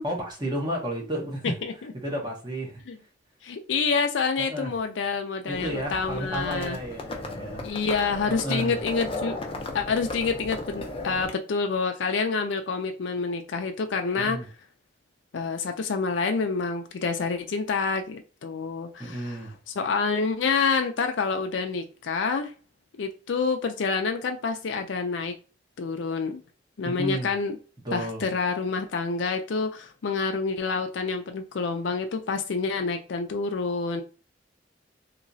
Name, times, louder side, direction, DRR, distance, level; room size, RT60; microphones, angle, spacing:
voice 1, 0.0-1.5 1.9-2.8 4.4-4.7 5.5-7.9 8.3-8.8 14.2-14.5 19.0-19.5 26.8-27.3 27.8-28.3, right 1 dB, 25° right, -2 dB, 1.1 m, -32 dB
voice 2, 3.4-6.8 7.6-9.4 9.7-14.4 15.3-19.4 19.8-22.5 23.0-25.3 25.8-26.4 26.8-27.6 27.9-34.0, left 4 dB, 85° left, 5 dB, 0.5 m, -27 dB
Livestock farm animals working animals, 5.5-11.3, left 2 dB, 30° left, 0.6 m, -36 dB
3.1 x 2.9 x 2.6 m, 0.36 s
head